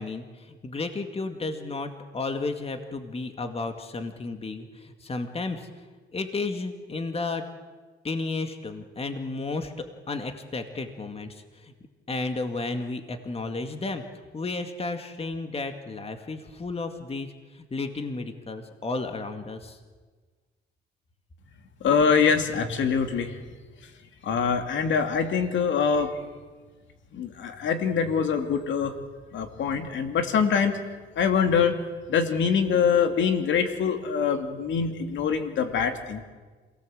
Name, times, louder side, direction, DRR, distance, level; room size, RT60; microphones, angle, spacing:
voice 1, 0.0-5.7 6.1-7.4 8.0-11.7 12.1-14.0 14.3-19.8, left 3 dB, 30° left, 6 dB, 2.2 m, -33 dB
voice 2, 21.8-23.3 24.2-26.2 27.1-28.9 29.3-30.7 31.2-31.8 32.1-36.2, left 6 dB, 70° left, 6 dB, 2.7 m, -24 dB
27.5 x 18.5 x 7.8 m, 1.4 s
cardioid pair, 90°, 20 cm